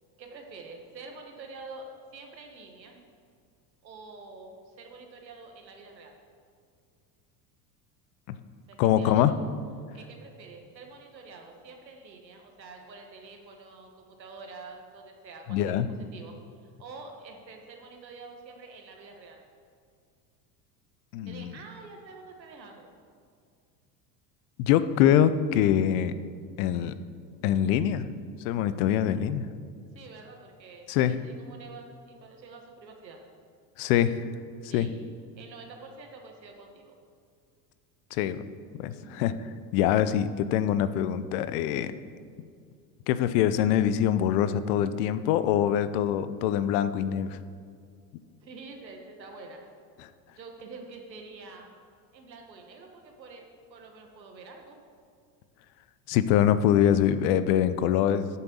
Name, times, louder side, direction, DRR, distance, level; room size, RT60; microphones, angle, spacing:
voice 1, 0.2-3.0 3.8-6.2 8.7-9.3 9.9-15.8 16.1-16.3 16.6-19.4 21.3-22.9 30.0-33.2 34.7-34.9 35.3-36.9 38.9-39.2 39.9-40.1 48.4-49.6 50.4-51.7 52.1-53.4 53.7-54.8, right 3 dB, 90° right, 3 dB, 1.6 m, -47 dB
voice 2, 8.8-9.3 15.5-15.9 21.1-21.6 24.6-26.2 26.6-26.9 27.4-28.1 28.4-29.5 30.9-31.2 33.8-34.2 34.7-34.9 38.1-38.4 38.8-39.3 39.7-41.9 43.1-47.4 50.0-50.1 56.1-58.3, left 10 dB, 60° left, 13 dB, 0.8 m, -24 dB
8.7 x 7.0 x 7.0 m, 2.2 s
hypercardioid pair, 75°, 50 cm